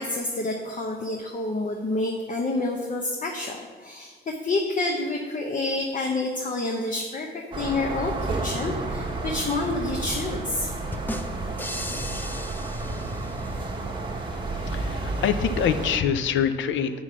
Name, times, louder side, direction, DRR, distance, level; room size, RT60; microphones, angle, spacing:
voice 1, 0.0-10.9, left 2 dB, 40° left, 2 dB, 0.9 m, -28 dB
sound 1, 7.5-16.0, right 2 dB, 25° right, 1.4 m, -31 dB
sound 2, 10.9-13.7, left 1 dB, 10° left, 0.6 m, -36 dB
voice 2, 14.5-16.9, left 8 dB, 70° left, 11 dB, 0.6 m, -25 dB
7.4 x 5.6 x 6.1 m, 1.5 s
cardioid pair, 90°, 20 cm